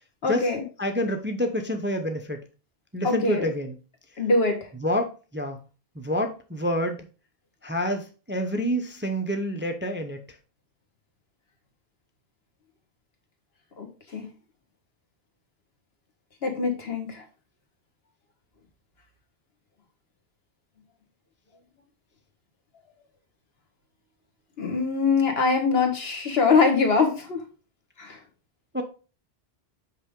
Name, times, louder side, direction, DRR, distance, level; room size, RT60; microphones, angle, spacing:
voice 1, 0.2-0.6 3.0-3.4 4.2-4.6 13.8-13.9 14.1-14.3 16.4-17.2 24.6-27.4 28.0-28.2, left 4 dB, 75° left, 4 dB, 1.6 m, -23 dB
voice 2, 0.8-2.4 2.9-3.8 4.1-4.2 4.8-5.6 6.0-7.0 7.6-10.2 28.7-28.8, equal, 15° right, 5 dB, 0.5 m, -28 dB
5.6 x 5.5 x 3.6 m, 0.35 s
omnidirectional pair, 1.0 m